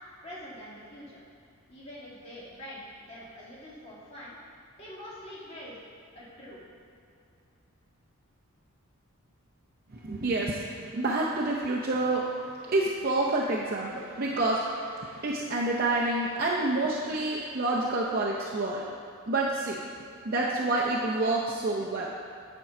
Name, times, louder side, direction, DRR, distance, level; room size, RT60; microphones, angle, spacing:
voice 1, 0.2-1.2 1.7-4.4 4.8-5.8 6.1-6.6, equal, 25° left, -8 dB, 2.0 m, -44 dB
voice 2, 10.0-12.2 12.7-18.8 19.3-19.8 20.2-22.1, right 2 dB, 40° right, -4 dB, 0.6 m, -28 dB
8.9 x 4.5 x 5.9 m, 2.5 s
head